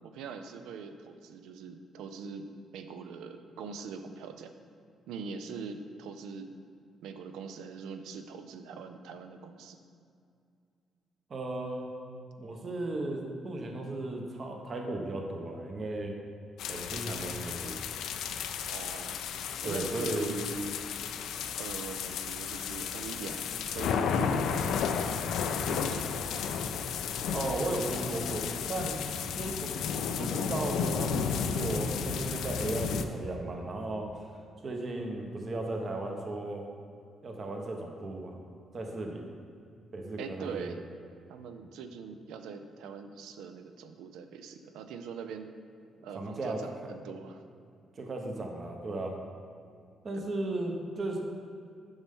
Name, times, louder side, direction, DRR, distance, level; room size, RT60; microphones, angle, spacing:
voice 1, 0.0-2.5 2.7-4.5 5.1-6.5 7.0-9.8 18.7-19.2 19.6-20.9 21.6-23.5 23.7-24.9 25.6-26.1 40.2-40.8 41.3-45.5 46.0-47.4 50.1-50.3, right 5 dB, 90° right, 8 dB, 0.4 m, -42 dB
voice 2, 11.3-11.9 12.4-16.2 16.7-17.8 19.6-20.3 27.3-29.0 29.3-34.3 34.6-36.7 37.2-38.4 38.7-39.3 39.9-40.7 46.1-46.6 48.0-49.2 50.0-51.2, right 2 dB, 40° right, 2 dB, 0.9 m, -35 dB
sound 1, 16.6-33.0, left 6 dB, 80° left, 0.3 m, -33 dB
7.0 x 5.4 x 3.6 m, 2.4 s
cardioid pair, 90°, 0 cm